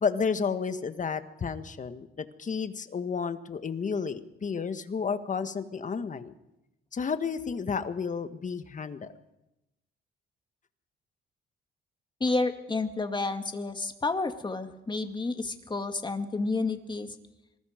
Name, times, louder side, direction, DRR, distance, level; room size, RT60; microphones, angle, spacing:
voice 1, 0.0-6.3 6.9-9.1, left 5 dB, 40° left, 10 dB, 1.6 m, -31 dB
voice 2, 12.2-17.1, left 3 dB, 25° left, 7 dB, 2.2 m, -30 dB
26.5 x 21.0 x 5.2 m, 0.95 s
cardioid pair, 90°, 20 cm